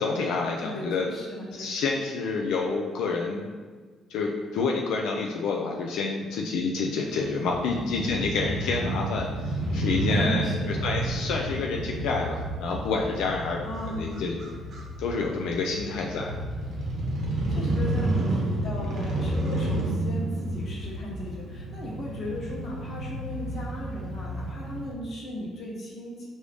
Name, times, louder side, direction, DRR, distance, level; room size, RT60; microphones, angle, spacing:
voice 1, 0.0-1.1 1.6-3.5 4.1-13.6 13.9-14.4 15.0-16.3, left 4 dB, 85° left, 0 dB, 0.4 m, -28 dB
voice 2, 0.6-1.7 7.7-8.3 10.1-10.9 13.6-14.4 17.5-26.3, equal, 40° left, -3 dB, 1.1 m, -37 dB
Crow / Motorcycle, 7.0-24.9, right 1 dB, 50° right, 0.8 m, -31 dB
4.7 x 2.6 x 3.4 m, 1.5 s
cardioid pair, 135°, 0 cm